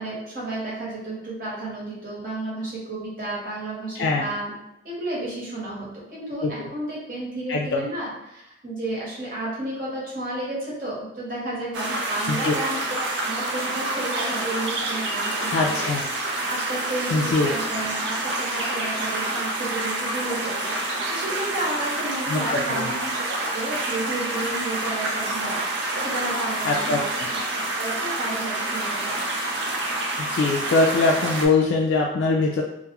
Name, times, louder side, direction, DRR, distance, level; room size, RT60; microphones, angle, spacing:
voice 1, 0.0-4.5 4.8-12.8 13.2-15.8 16.5-25.7 26.0-27.1 27.5-29.4, right 2 dB, 50° right, -6 dB, 0.9 m, -32 dB
voice 2, 4.0-4.3 6.4-6.5 7.5-7.8 12.3-12.5 15.4-16.1 17.1-17.5 22.3-22.4 22.7-22.9 26.6-27.0 30.2-32.6, left 3 dB, 85° left, -2 dB, 0.3 m, -22 dB
sound 1, 11.7-31.5, right 2 dB, 75° right, 0.4 m, -28 dB
2.2 x 2.1 x 2.8 m, 0.86 s
head